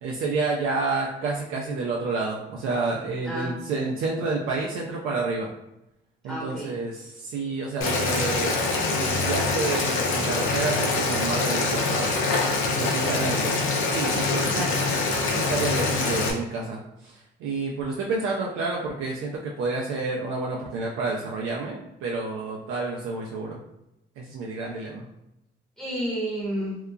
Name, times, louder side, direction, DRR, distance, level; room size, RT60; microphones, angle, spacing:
voice 1, 0.0-5.5 6.2-8.6 8.9-12.3 12.7-14.7 15.3-23.6 24.2-25.1, right 3 dB, 90° right, -2 dB, 0.4 m, -29 dB
voice 2, 6.3-6.7 13.3-13.5 14.5-14.8 25.8-26.8, equal, ahead, -7 dB, 0.9 m, -31 dB
Boiling, 7.8-16.3, left 3 dB, 80° left, 0.6 m, -24 dB
2.8 x 2.4 x 2.3 m, 0.88 s
cardioid pair, 90°, 20 cm